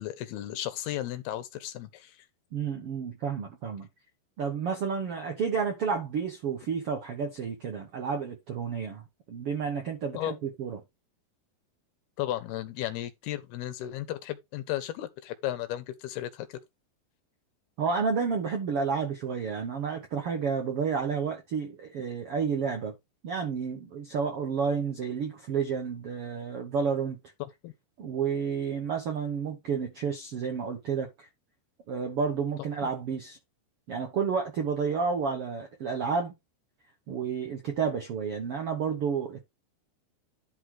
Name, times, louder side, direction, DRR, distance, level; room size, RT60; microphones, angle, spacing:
voice 1, 0.0-2.3 10.1-10.4 12.2-16.6 27.4-27.7 32.8-32.9, left 13 dB, 75° left, 2.7 m, -35 dB
voice 2, 2.5-3.9 4.4-9.0 9.3-10.8 17.8-22.9 23.2-27.2 28.0-31.3 31.9-33.4 33.9-36.3 37.1-39.4, right 6 dB, 70° right, 1.3 m, -30 dB
11.0 x 4.0 x 4.7 m
omnidirectional pair, 4.8 m